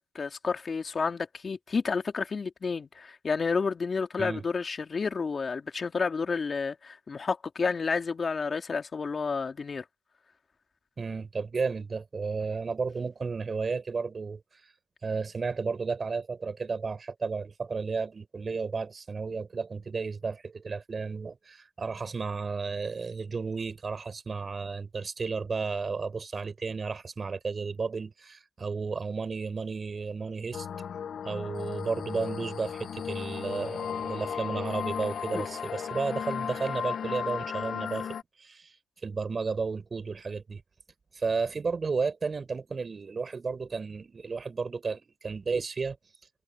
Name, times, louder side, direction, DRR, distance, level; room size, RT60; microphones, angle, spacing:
voice 1, 0.0-9.8 35.3-35.4, left 5 dB, 40° left, 2.9 m, -30 dB
voice 2, 11.0-14.4 15.0-30.7 31.2-38.7 39.0-40.6 41.1-46.0, right 4 dB, 35° right, 5.5 m, -33 dB
sound 1, 30.5-38.2, left 7 dB, 55° left, 1.2 m, -35 dB
supercardioid pair, 75°, 0 cm